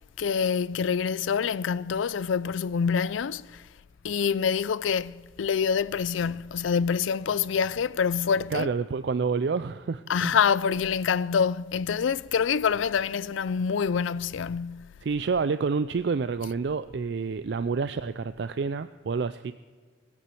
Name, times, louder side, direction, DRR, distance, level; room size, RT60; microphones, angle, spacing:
voice 1, 0.2-3.6 4.0-8.7 10.1-14.9, left 6 dB, 85° left, 0.4 m, -26 dB
voice 2, 8.5-10.4 15.0-19.5, right 5 dB, 60° right, 0.4 m, -28 dB
19.0 x 8.5 x 7.6 m
head